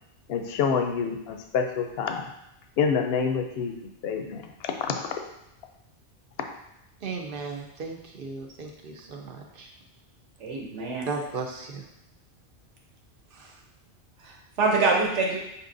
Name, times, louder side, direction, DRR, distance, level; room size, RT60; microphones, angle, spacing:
voice 1, 0.3-2.3 2.8-3.7 4.0-4.9, left 6 dB, 65° left, 5 dB, 0.7 m, -27 dB
voice 2, 7.0-9.7 11.1-11.8 13.3-13.6, right 4 dB, 60° right, 2 dB, 0.7 m, -36 dB
voice 3, 10.4-11.1 14.2-15.4, right 3 dB, 85° right, -1 dB, 1.1 m, -25 dB
6.2 x 2.8 x 2.5 m, 0.86 s
omnidirectional pair, 1.2 m